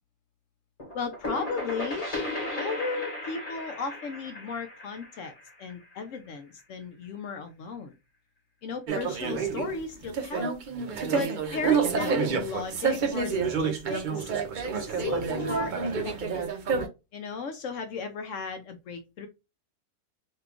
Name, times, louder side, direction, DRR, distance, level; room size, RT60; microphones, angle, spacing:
sound 1, 0.8-6.4, left 2 dB, 30° left, 1.1 m, -36 dB
voice 1, 0.9-2.1 2.5-5.3 5.6-7.9 8.6-10.6 11.1-14.3 14.7-16.5 17.1-19.3, left 4 dB, 70° left, 0.8 m, -35 dB
sound 2, 8.9-16.9, right 6 dB, 65° right, 0.4 m, -28 dB
2.9 x 2.3 x 3.5 m
omnidirectional pair, 1.5 m